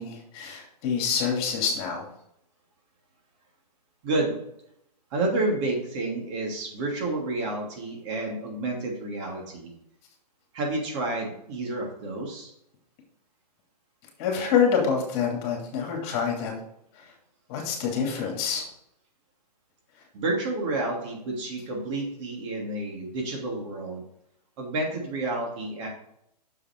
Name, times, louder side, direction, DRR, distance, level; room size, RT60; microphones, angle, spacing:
voice 1, 0.0-2.1 14.2-16.6 16.9-17.1 17.5-18.6, left 6 dB, 40° left, 0 dB, 2.9 m, -26 dB
voice 2, 4.0-4.4 5.1-9.7 10.5-12.5 20.1-24.0 24.6-25.9, right 2 dB, 45° right, -1 dB, 3.1 m, -30 dB
7.1 x 6.9 x 4.6 m, 0.75 s
hypercardioid pair, 135°, 21 cm